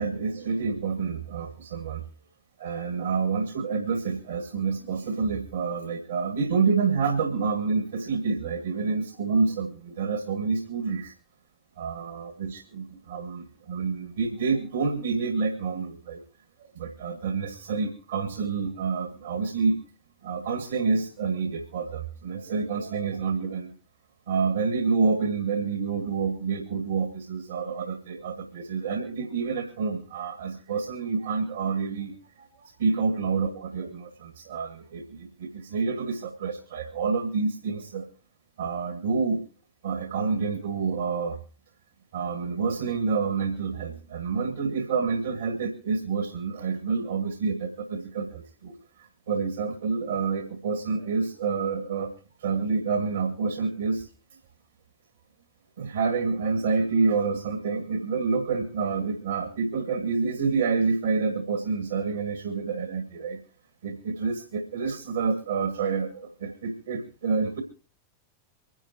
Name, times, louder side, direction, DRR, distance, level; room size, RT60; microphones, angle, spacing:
voice 1, 0.0-2.0 2.6-11.1 11.8-16.2 16.8-19.8 20.2-23.7 24.3-38.1 38.6-39.4 39.8-41.4 42.1-48.7 49.3-52.1 52.4-54.1 55.8-63.4 63.8-67.6, right 4 dB, 65° right, 5 dB, 2.0 m, -28 dB
24.5 x 10.5 x 2.9 m, 0.39 s
figure-of-eight pair, 90°, 0 cm